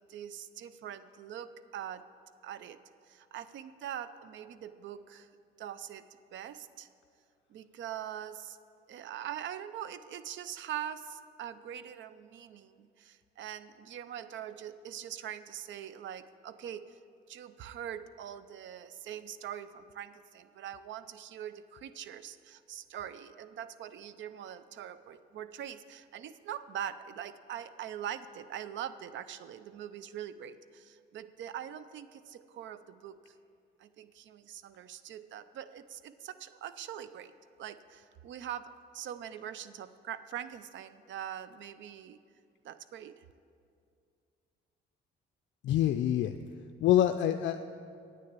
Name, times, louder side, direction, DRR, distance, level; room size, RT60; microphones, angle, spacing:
voice 1, 0.0-2.0 2.4-2.8 3.0-5.3 5.6-6.1 6.3-6.9 7.5-8.6 8.9-17.0 17.3-33.3 33.8-37.3 37.6-42.2 42.6-43.2, right 10 dB, 70° right, 13 dB, 0.5 m, -43 dB
voice 2, 45.6-46.3 46.8-47.6, left 11 dB, 70° left, 8 dB, 0.4 m, -26 dB
9.0 x 6.6 x 8.7 m, 2.3 s
cardioid pair, 90°, 20 cm